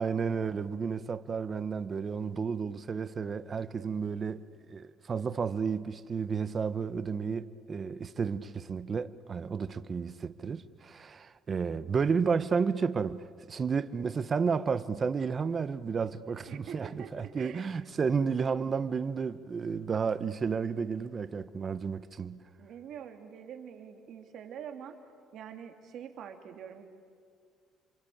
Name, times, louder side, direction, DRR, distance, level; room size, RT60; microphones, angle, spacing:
voice 1, 0.0-4.4 4.7-22.4, right 5 dB, 30° right, 0.8 m, -32 dB
voice 2, 16.5-17.7 22.6-25.0 25.3-26.8, right 8 dB, 60° right, 2.8 m, -45 dB
27.5 x 24.5 x 8.6 m
cardioid pair, 130°, 0 cm